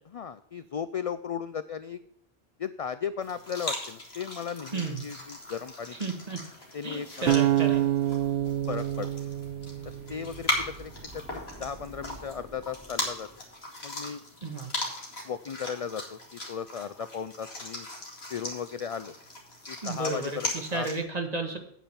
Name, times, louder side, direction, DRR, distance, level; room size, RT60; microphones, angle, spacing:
voice 1, 0.1-2.0 2.6-6.0 6.7-7.4 8.7-9.1 10.1-13.3 13.8-14.2 15.2-17.9 18.3-19.1 19.7-20.9, left 7 dB, 55° left, 13 dB, 0.4 m, -36 dB
sound 1, 3.2-21.0, left 2 dB, 75° left, 2.6 m, -38 dB
voice 2, 6.0-6.4 6.8-7.8 14.4-14.7 19.8-21.6, right 3 dB, 40° right, 4 dB, 1.7 m, -33 dB
sound 2, 7.3-10.4, right 12 dB, 70° right, 0.8 m, -27 dB
sound 3, 7.4-13.7, right 2 dB, 20° right, 2.4 m, -50 dB
9.0 x 8.5 x 4.2 m, 0.72 s
omnidirectional pair, 1.1 m